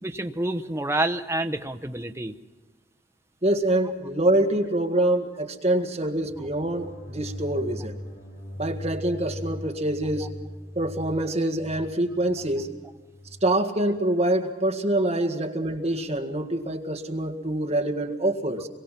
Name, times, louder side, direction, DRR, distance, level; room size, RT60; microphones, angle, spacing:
voice 1, 0.0-2.3, right 1 dB, 15° right, 8 dB, 0.8 m, -28 dB
voice 2, 3.4-8.0 8.6-10.3 10.8-12.7 13.4-18.7, right 1 dB, 35° right, 4 dB, 1.8 m, -25 dB
sound 1, 6.2-13.5, equal, 80° left, 5.2 m, -39 dB
26.5 x 23.0 x 5.9 m, 1.2 s
head